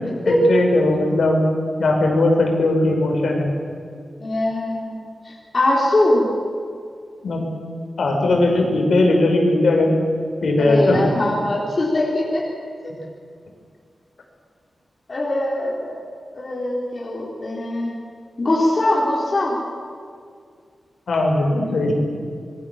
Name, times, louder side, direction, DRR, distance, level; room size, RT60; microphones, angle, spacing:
voice 1, 0.2-1.5 1.8-3.5 7.2-7.5 8.0-9.9 10.4-11.0 21.1-22.0, left 2 dB, 75° left, 1 dB, 5.9 m, -18 dB
voice 2, 4.2-5.0 5.2-6.3 10.6-12.4 15.1-16.0 16.3-17.9 18.4-19.6, left 1 dB, 40° left, -4 dB, 4.1 m, -21 dB
25.5 x 22.0 x 7.4 m, 2.2 s
wide cardioid pair, 155°, 0 cm